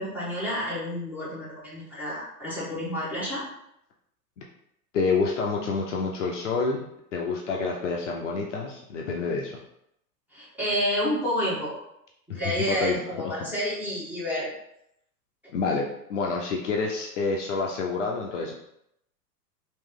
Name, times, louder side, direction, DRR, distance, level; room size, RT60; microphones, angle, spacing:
voice 1, 0.0-3.4 10.3-11.8 12.3-14.5, equal, 5° right, -8 dB, 1.1 m, -29 dB
voice 2, 4.9-9.6 12.3-13.5 15.5-18.5, left 4 dB, 50° left, -1 dB, 0.6 m, -28 dB
3.1 x 2.9 x 3.6 m, 0.77 s
figure-of-eight pair, 95°, 49 cm